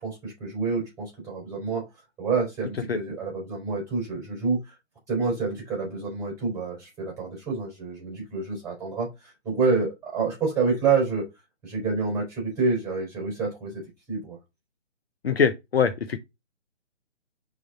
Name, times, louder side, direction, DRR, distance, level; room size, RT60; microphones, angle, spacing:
voice 1, 0.0-1.8 2.2-4.7 5.1-11.2 11.6-13.8 14.1-14.4, right 4 dB, 10° right, 4.2 m, -28 dB
voice 2, 15.2-16.2, left 6 dB, 55° left, 0.8 m, -23 dB
6.2 x 3.9 x 4.0 m
figure-of-eight pair, 140°, 36 cm